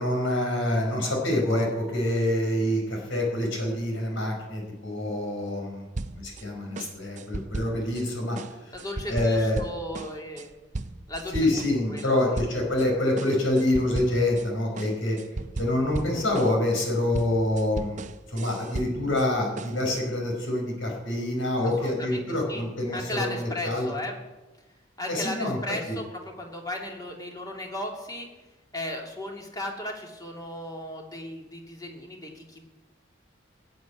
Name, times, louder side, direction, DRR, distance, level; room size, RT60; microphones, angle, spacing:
voice 1, 0.0-5.9 6.2-8.4 8.7-8.8 9.1-9.6 11.3-15.2 15.6-18.0 18.3-23.9 25.1-25.6, left 1 dB, 75° left, 1 dB, 5.3 m, -26 dB
sound 1, 6.0-6.4 6.8-8.0 8.4-12.1 12.4-12.9 13.2-14.5 14.8-19.3 19.6-20.0, right 2 dB, 40° right, 0.6 m, -36 dB
voice 2, 8.7-10.5 11.1-12.2 21.8-22.2 22.5-22.6 22.9-24.2 25.0-26.0 26.4-28.3 28.7-32.6, left 1 dB, 20° left, 0 dB, 2.6 m, -36 dB
14.5 x 8.0 x 9.5 m, 1.1 s
head